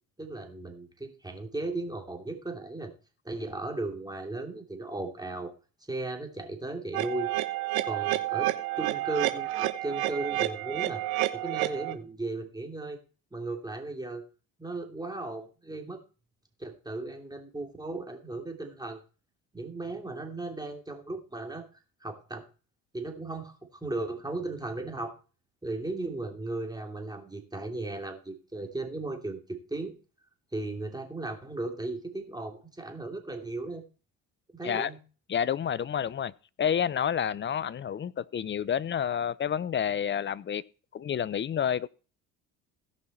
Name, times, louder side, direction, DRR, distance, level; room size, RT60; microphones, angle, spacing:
voice 1, 0.2-2.9 3.2-5.5 5.9-7.3 7.8-11.0 11.3-13.0 13.3-14.2 14.6-16.0 16.6-19.0 19.5-21.7 22.0-22.4 22.9-25.1 25.6-29.9 30.5-33.8 34.5-35.0, right 2 dB, 10° right, 2.8 m, -36 dB
sound 1, 6.9-11.9, right 15 dB, 70° right, 1.2 m, -30 dB
voice 2, 35.3-36.3 36.6-40.6 40.9-41.9, left 8 dB, 30° left, 0.6 m, -29 dB
17.0 x 5.6 x 4.4 m
hypercardioid pair, 70°, 39 cm